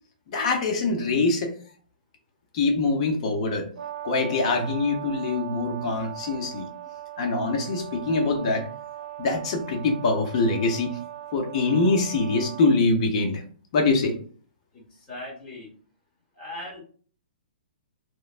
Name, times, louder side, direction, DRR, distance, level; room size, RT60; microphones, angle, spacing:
voice 1, 0.3-1.5 2.5-3.7 4.0-6.7 7.2-8.7 9.2-11.0 11.3-13.4 13.7-14.2, left 3 dB, 40° left, 3 dB, 0.6 m, -24 dB
Brass instrument, 3.8-12.8, right 13 dB, 70° right, 0.6 m, -39 dB
voice 2, 14.7-15.7 16.4-16.8, left 1 dB, 20° left, -4 dB, 1.1 m, -39 dB
3.2 x 2.1 x 2.4 m, 0.43 s
hypercardioid pair, 165°, 5 cm